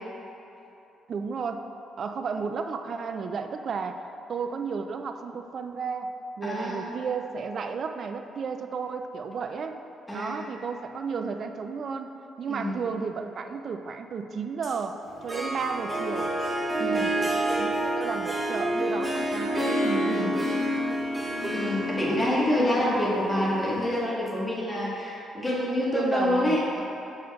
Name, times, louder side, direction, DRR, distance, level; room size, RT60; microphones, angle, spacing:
voice 1, 1.1-1.7 2.0-4.0 4.3-9.8 10.1-12.1 12.4-16.3 17.6-20.4 25.9-26.6, right 5 dB, 55° right, 7 dB, 0.3 m, -33 dB
voice 2, 6.4-7.0 10.1-10.4 12.5-12.8 16.8-17.1 20.0-20.4 21.5-26.8, left 1 dB, 15° left, -6 dB, 1.3 m, -27 dB
Harp, 15.0-24.0, right 1 dB, 15° right, 0.9 m, -28 dB
6.8 x 6.3 x 2.3 m, 2.9 s
cardioid pair, 90°, 0 cm